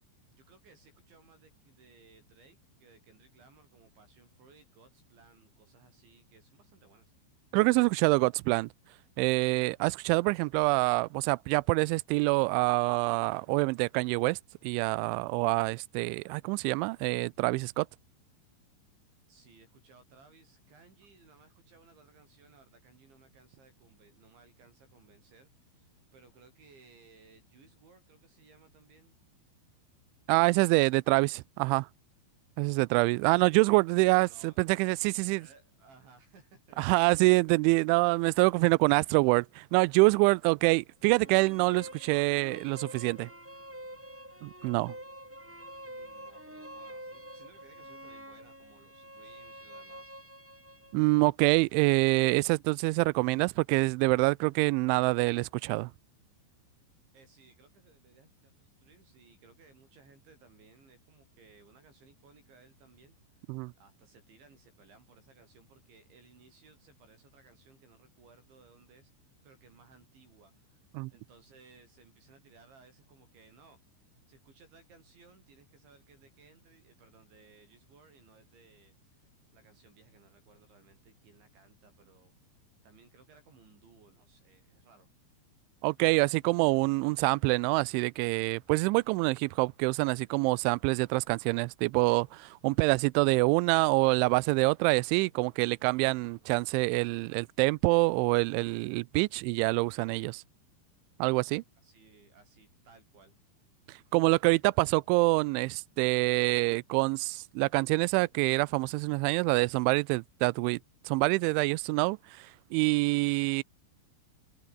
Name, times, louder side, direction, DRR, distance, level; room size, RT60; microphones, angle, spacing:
voice 1, 0.4-7.1 19.3-29.2 34.2-34.6 35.1-36.8 45.9-50.2 57.1-63.5 63.8-69.1 69.4-73.8 74.3-82.3 82.8-85.1 101.8-103.4, right 4 dB, 70° right, 9.6 m, -60 dB
voice 2, 7.5-8.7 9.2-17.9 30.3-31.9 32.6-35.5 36.8-43.3 44.4-45.0 50.9-55.9 63.5-63.7 70.9-71.1 85.8-100.4 101.2-101.6 103.9-110.8 111.1-113.6, right 25 dB, 85° right, 2.9 m, -26 dB
sound 1, 41.0-51.0, right 1 dB, 5° right, 2.1 m, -47 dB
omnidirectional pair, 5.5 m